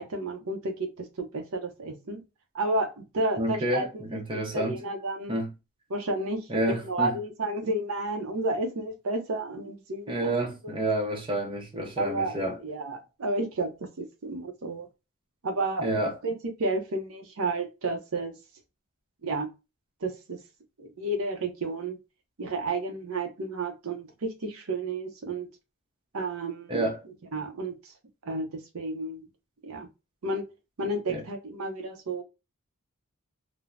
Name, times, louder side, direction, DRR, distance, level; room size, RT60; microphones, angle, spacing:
voice 1, 0.0-2.2 2.5-5.4 5.9-10.3 12.0-14.9 15.4-18.3 19.2-19.5 20.0-20.4 20.8-22.0 22.4-25.5 26.1-26.8 27.3-27.9 28.3-29.2 29.6-29.9 30.2-30.5 30.8-32.2, right 2 dB, 75° right, 0.6 m, -31 dB
voice 2, 3.4-4.8 5.3-5.5 6.5-7.2 10.1-12.6 15.8-16.2 26.7-27.0 31.1-31.2, right 1 dB, 25° right, 0.6 m, -29 dB
3.2 x 2.0 x 2.4 m
head